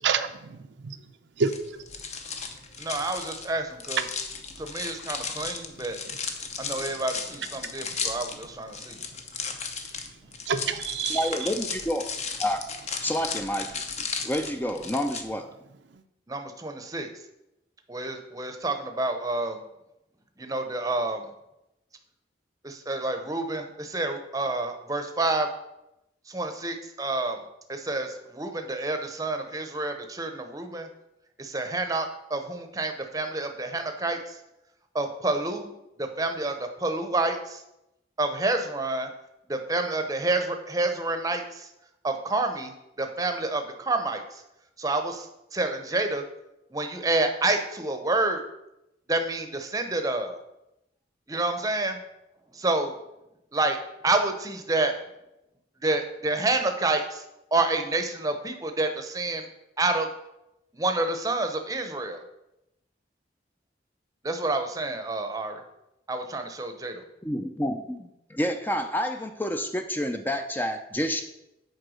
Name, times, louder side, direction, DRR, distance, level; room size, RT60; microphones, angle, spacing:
voice 1, 0.0-1.0 1.4-1.5 6.1-6.2 6.7-7.0 10.5-11.3, right 5 dB, 75° right, 8 dB, 0.6 m, -28 dB
sound 1, 1.4-15.2, left 5 dB, 35° left, 0.8 m, -35 dB
voice 2, 2.8-4.0 4.6-6.0 6.6-9.0 16.3-17.1 17.9-19.6 20.4-21.2 22.6-25.5 26.3-27.4 27.7-30.9 31.4-34.2 34.9-35.7 36.0-37.6 38.2-39.1 39.5-41.4 42.0-42.7 43.0-44.2 44.8-45.3 45.5-46.2 46.7-48.4 49.1-50.4 51.3-52.0 52.6-52.9 53.5-53.8 54.0-54.9 55.8-57.2 57.5-59.5 59.8-60.1 60.7-62.2 64.2-65.6 66.1-67.0, right 2 dB, 20° right, 6 dB, 0.8 m, -28 dB
voice 3, 11.1-12.1 12.4-12.6 13.0-13.8 14.2-15.5 67.2-71.2, equal, 10° left, 6 dB, 0.4 m, -29 dB
7.8 x 4.6 x 6.3 m, 0.88 s
head